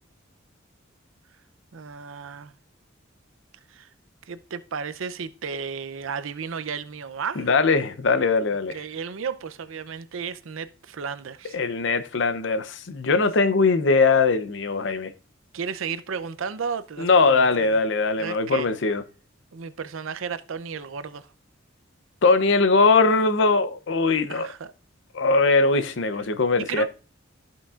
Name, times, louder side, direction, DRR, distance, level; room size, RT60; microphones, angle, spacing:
voice 1, 1.7-2.5 3.7-3.9 4.3-7.5 8.7-11.6 15.5-17.8 18.2-18.7 19.5-21.3 24.3-24.7 26.6-26.9, right 6 dB, 85° right, 0.5 m, -33 dB
voice 2, 7.4-8.8 11.5-15.1 17.0-19.0 22.2-24.5 25.1-26.9, left 3 dB, 65° left, 0.6 m, -21 dB
13.5 x 5.8 x 2.4 m
head